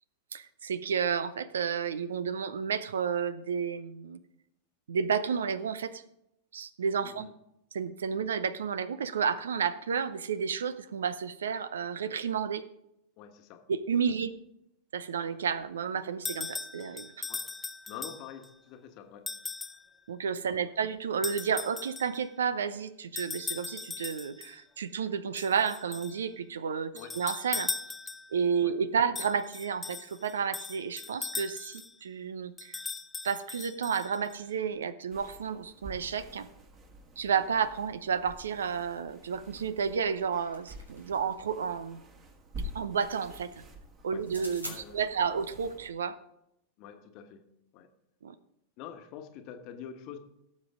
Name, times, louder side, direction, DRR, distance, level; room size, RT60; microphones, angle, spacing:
voice 1, 0.3-4.2 4.9-6.0 6.5-7.3 7.7-12.7 13.7-14.4 14.9-17.2 20.1-27.7 28.3-32.8 33.2-36.5 37.2-42.0 42.7-43.5 44.0-46.2 48.2-48.3, right 6 dB, 65° right, 15 dB, 0.6 m, -31 dB
voice 2, 7.0-7.3 13.2-13.7 14.1-14.2 17.3-17.5 17.9-19.3 20.5-20.8 26.9-27.2 28.6-28.8 44.1-44.3 44.6-45.2 46.8-47.4 47.7-47.9 48.8-50.2, left 9 dB, 40° left, 7 dB, 1.3 m, -46 dB
sound 1, 16.3-18.5 19.3-19.9 21.2-22.2 23.2-24.5 25.4-26.2 27.0-28.4 29.2-31.9 32.6-34.3, left 4 dB, 15° left, 0.7 m, -39 dB
sound 2, 35.1-45.9, equal, 30° right, 2.1 m, -48 dB
sound 3, 40.2-41.5 44.2-44.8, equal, 90° right, 2.6 m, -44 dB
17.5 x 7.4 x 3.6 m, 0.81 s
figure-of-eight pair, 90°, 0 cm